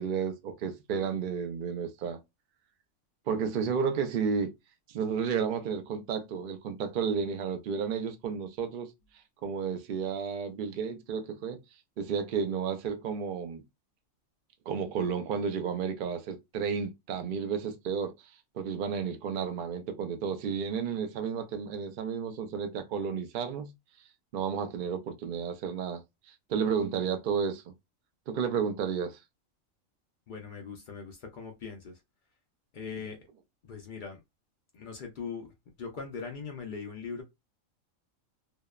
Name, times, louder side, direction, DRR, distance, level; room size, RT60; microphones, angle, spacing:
voice 1, 0.0-2.2 3.3-4.5 4.9-8.9 9.4-11.6 12.0-13.6 14.7-18.1 18.5-23.7 24.3-26.0 26.3-27.6 28.3-29.2, right 6 dB, 70° right, 0.4 m, -32 dB
voice 2, 30.3-32.0 32.7-33.2 33.6-34.2 34.7-35.5 35.8-37.2, left 5 dB, 70° left, 0.4 m, -40 dB
2.7 x 2.0 x 2.2 m
omnidirectional pair, 1.4 m